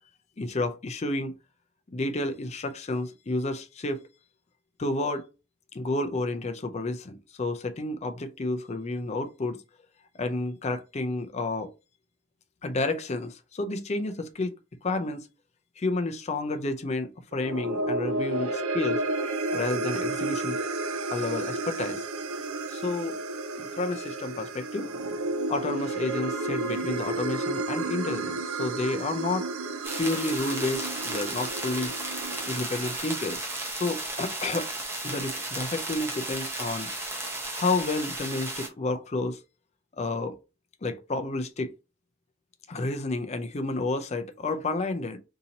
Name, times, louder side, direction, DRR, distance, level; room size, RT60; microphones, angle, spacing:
voice 1, 0.4-1.3 1.9-4.0 4.8-5.3 5.7-9.6 10.1-11.7 12.6-14.5 14.8-15.3 15.8-19.0 19.5-20.6 21.1-22.0 22.7-23.2 23.6-24.9 25.5-29.4 30.0-31.9 32.5-34.7 35.0-36.9 37.6-39.4 40.0-40.4 40.8-41.7 42.7-45.2, left 2 dB, 30° left, 0.4 m, -30 dB
sound 1, 17.3-33.8, right 2 dB, 85° right, 0.5 m, -32 dB
sound 2, 29.8-38.7, right 2 dB, 10° right, 0.6 m, -34 dB
2.8 x 2.7 x 3.9 m
head